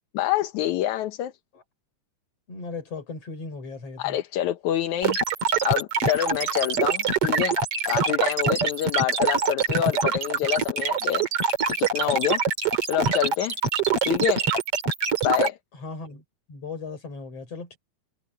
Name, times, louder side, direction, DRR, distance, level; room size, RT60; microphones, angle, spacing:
voice 1, 0.1-1.3 4.0-5.2 5.6-7.6 7.9-11.3 11.7-12.4 12.9-13.6 14.1-14.5 15.2-15.6, left 12 dB, 70° left, 2.2 m, -26 dB
voice 2, 2.5-4.2 15.8-16.2 16.5-17.8, left 4 dB, 45° left, 6.7 m, -37 dB
sound 1, 5.0-15.5, right 5 dB, 45° right, 3.5 m, -24 dB
omnidirectional pair, 3.7 m